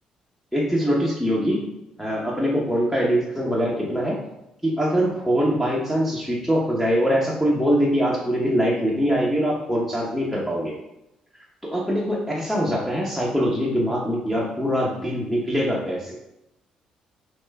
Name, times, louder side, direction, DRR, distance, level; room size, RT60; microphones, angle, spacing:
voice 1, 0.5-1.6 2.0-4.2 4.6-10.8 11.6-16.2, equal, 5° left, -4 dB, 0.8 m, -23 dB
6.0 x 2.1 x 2.2 m, 0.88 s
hypercardioid pair, 50°, 3 cm